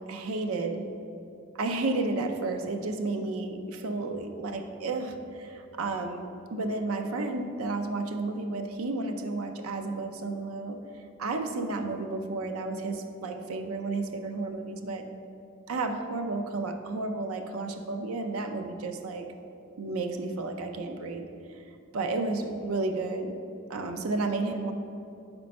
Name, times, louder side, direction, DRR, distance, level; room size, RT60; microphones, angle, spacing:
voice 1, 0.1-0.9 1.5-10.8 11.2-15.1 15.7-19.3 19.8-21.3 21.9-23.3 23.7-24.7, right 3 dB, 90° right, 6 dB, 0.5 m, -32 dB
4.5 x 4.2 x 5.2 m, 2.6 s
head